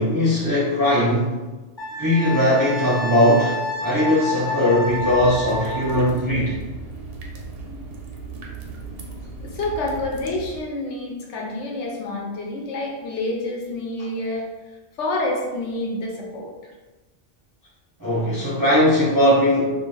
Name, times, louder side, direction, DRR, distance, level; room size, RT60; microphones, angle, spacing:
voice 1, 0.0-1.4 2.0-6.5 18.0-19.6, left 1 dB, 25° right, -8 dB, 0.5 m, -19 dB
Wind instrument woodwind instrument, 1.8-6.1, left 1 dB, 25° left, 0.8 m, -29 dB
sound 1, 4.8-10.6, right 3 dB, 65° right, 0.7 m, -36 dB
voice 2, 9.4-14.4 15.0-16.5, left 2 dB, 75° left, -1 dB, 0.9 m, -28 dB
2.4 x 2.4 x 3.0 m, 1.2 s
omnidirectional pair, 1.2 m